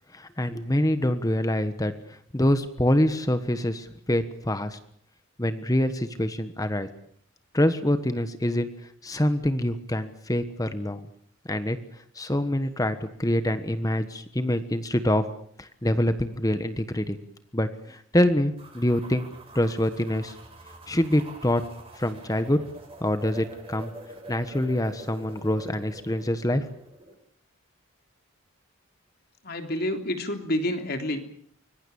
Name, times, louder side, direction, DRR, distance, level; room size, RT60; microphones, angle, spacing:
voice 1, 0.1-4.8 5.4-6.9 7.5-8.7 9.0-11.1 11.5-11.8 12.1-15.3 15.6-17.2 17.5-19.3 19.5-20.3 20.9-21.6 22.0-22.6 23.0-23.9 24.3-26.6, left 1 dB, 15° left, 10 dB, 1.3 m, -25 dB
sound 1, 18.6-27.1, right 2 dB, 25° right, 5.9 m, -46 dB
voice 2, 29.4-31.3, left 1 dB, 50° left, 6 dB, 3.3 m, -28 dB
25.5 x 22.0 x 7.1 m, 0.63 s
head